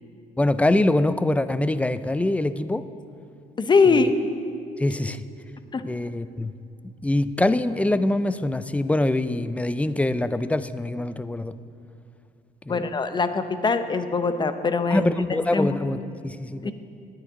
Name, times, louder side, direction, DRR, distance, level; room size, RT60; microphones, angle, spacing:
voice 1, 0.4-2.9 3.9-4.1 4.8-5.2 5.8-6.5 7.0-11.6 12.7-12.9 14.9-16.7, left 1 dB, 10° left, 13 dB, 0.4 m, -24 dB
voice 2, 3.6-4.1 5.7-5.8 12.7-15.0 15.5-15.8 16.6-16.7, left 4 dB, 25° left, 10 dB, 0.8 m, -22 dB
9.8 x 9.7 x 9.4 m, 2.5 s
cardioid pair, 110°, 17 cm